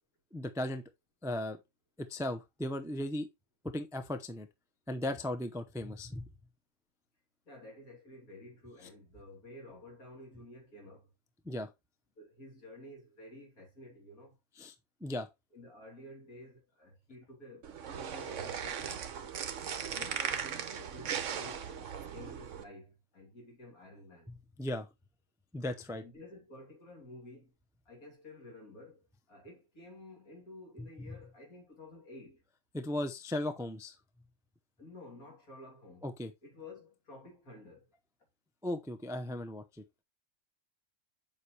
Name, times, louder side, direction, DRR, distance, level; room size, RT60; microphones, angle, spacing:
voice 1, 0.3-0.8 1.2-1.6 2.0-3.3 3.6-4.5 4.9-6.2 11.5-11.7 14.6-14.7 15.0-15.3 24.6-24.9 25.5-26.0 30.8-30.9 32.7-33.9 36.0-36.3 38.6-39.8, left 1 dB, 5° right, 0.4 m, -36 dB
voice 2, 7.5-11.1 12.2-14.4 15.5-19.3 19.9-24.3 25.9-27.5 27.9-32.4 34.8-36.1 36.4-37.9, left 1 dB, 85° left, 3.6 m, -52 dB
sound 1, 17.6-22.6, right 8 dB, 65° right, 1.2 m, -38 dB
7.3 x 5.4 x 3.3 m
omnidirectional pair, 1.5 m